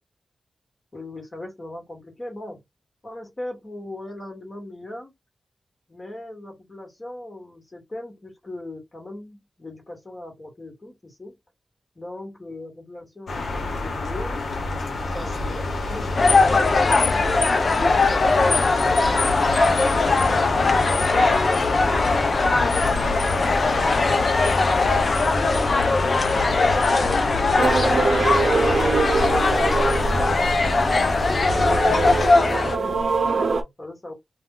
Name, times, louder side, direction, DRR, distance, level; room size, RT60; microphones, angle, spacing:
voice 1, 0.9-2.6 3.0-5.1 5.9-11.3 11.9-15.3 15.9-16.7 31.6-34.1, left 1 dB, 30° left, 1.2 m, -39 dB
sound 1, 13.3-32.3, left 3 dB, 80° left, 0.7 m, -27 dB
voice 2, 15.0-16.4 16.7-31.6, right 1 dB, 15° right, 0.9 m, -41 dB
sound 2, 16.2-32.8, left 3 dB, 50° left, 0.4 m, -20 dB
sound 3, 27.6-33.6, right 4 dB, 70° right, 0.6 m, -24 dB
2.3 x 2.1 x 3.7 m
wide cardioid pair, 105°, 0 cm